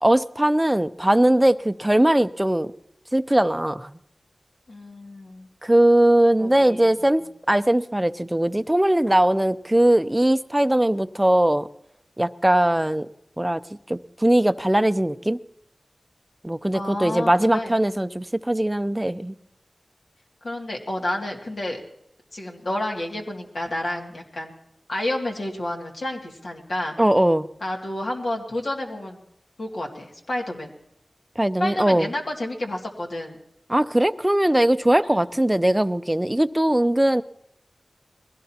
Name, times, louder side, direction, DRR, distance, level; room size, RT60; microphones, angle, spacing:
voice 1, 0.0-2.7 3.1-3.9 5.6-11.7 12.2-13.1 13.4-13.6 13.9-15.4 16.4-19.3 27.0-27.5 31.4-32.1 33.7-37.2, right 1 dB, 15° right, 13 dB, 0.5 m, -20 dB
voice 2, 4.7-5.5 6.4-6.9 16.7-17.7 20.4-21.8 22.3-24.5 24.9-26.9 27.6-29.2 29.6-30.7 31.6-33.4 35.0-35.2, left 1 dB, 75° left, 0 dB, 2.3 m, -30 dB
21.5 x 16.5 x 2.9 m, 0.78 s
wide cardioid pair, 50°, 0 cm